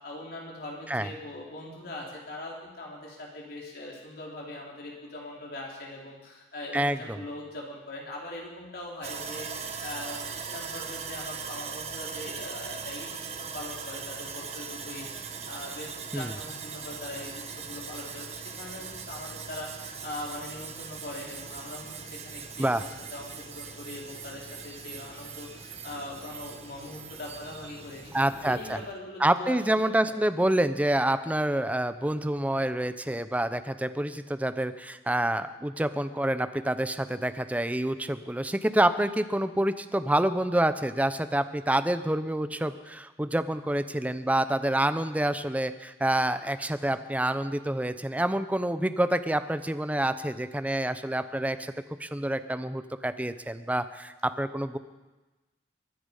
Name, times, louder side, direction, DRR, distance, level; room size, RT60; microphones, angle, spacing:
voice 1, 0.0-13.2 13.5-28.1 28.4-29.9, left 1 dB, 60° left, -2 dB, 4.2 m, -41 dB
voice 2, 6.7-7.2 16.1-16.3 22.6-22.8 28.1-28.8 29.2-51.7 52.0-54.8, right 1 dB, 10° right, 11 dB, 0.6 m, -27 dB
Sawing, 9.0-28.9, right 5 dB, 40° right, 1.4 m, -40 dB
23.0 x 10.0 x 5.5 m, 1.2 s
head